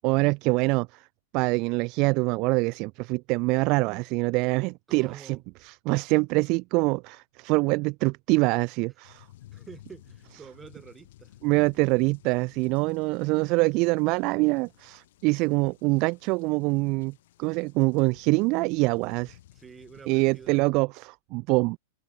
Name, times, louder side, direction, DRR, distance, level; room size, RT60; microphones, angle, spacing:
voice 1, 0.0-1.1 1.3-9.2 11.4-17.1 17.4-19.4 20.1-21.8, right 26 dB, 40° right, 0.5 m, -25 dB
voice 2, 4.9-5.4 9.5-11.4 19.5-20.8, right 6 dB, 15° right, 6.9 m, -48 dB
sound 1, 9.0-20.6, left 15 dB, 55° left, 5.4 m, -55 dB
figure-of-eight pair, 95°, 0 cm